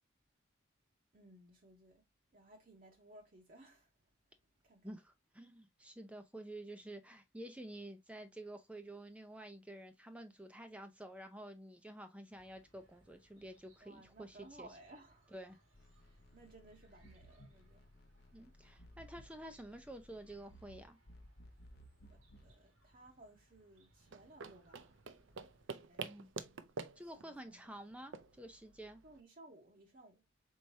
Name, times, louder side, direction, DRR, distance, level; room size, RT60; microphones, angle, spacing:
voice 1, 1.1-2.0 2.3-3.9 4.3-4.4 4.6-4.9 13.8-15.6 16.0-17.9 22.1-25.0 25.7-26.1 27.2-27.6 29.0-30.2, right 1 dB, 40° right, 0.9 m, -60 dB
voice 2, 4.8-14.7 15.3-15.6 18.3-21.0 26.0-26.3 27.0-29.0, right 1 dB, 5° right, 0.5 m, -50 dB
Chirp tweet, 12.3-25.7, right 1 dB, 90° right, 2.0 m, -71 dB
sound 1, 15.7-22.6, equal, 50° left, 0.7 m, -60 dB
sound 2, 24.0-29.2, right 4 dB, 65° right, 0.5 m, -48 dB
4.7 x 4.4 x 2.6 m
head